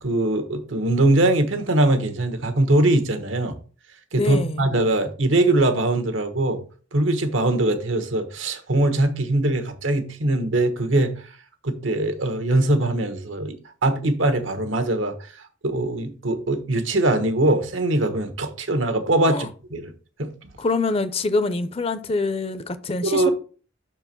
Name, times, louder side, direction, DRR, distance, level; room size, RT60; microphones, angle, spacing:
voice 1, 0.0-3.6 4.1-6.6 6.9-11.1 11.6-13.6 13.8-15.1 15.6-19.9 20.2-20.3 23.0-23.3, right 2 dB, 85° right, 1.3 m, -21 dB
voice 2, 4.2-4.7 19.3-19.5 20.6-23.3, left 3 dB, 30° left, 0.5 m, -25 dB
6.1 x 4.5 x 5.9 m
head